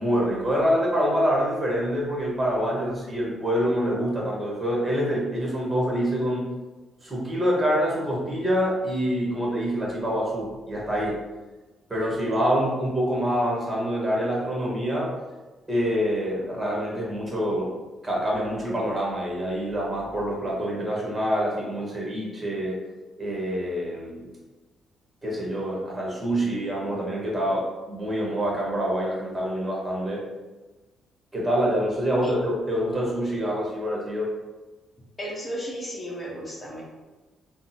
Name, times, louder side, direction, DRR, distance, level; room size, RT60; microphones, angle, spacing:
voice 1, 0.0-6.5 7.0-11.2 11.9-15.1 15.7-17.7 18.0-22.8 23.2-24.3 25.2-30.3 31.3-34.3, equal, 20° right, -4 dB, 1.2 m, -26 dB
voice 2, 35.2-36.8, equal, 25° left, -4 dB, 1.0 m, -34 dB
3.5 x 2.1 x 2.8 m, 1.2 s
cardioid pair, 90°, 0 cm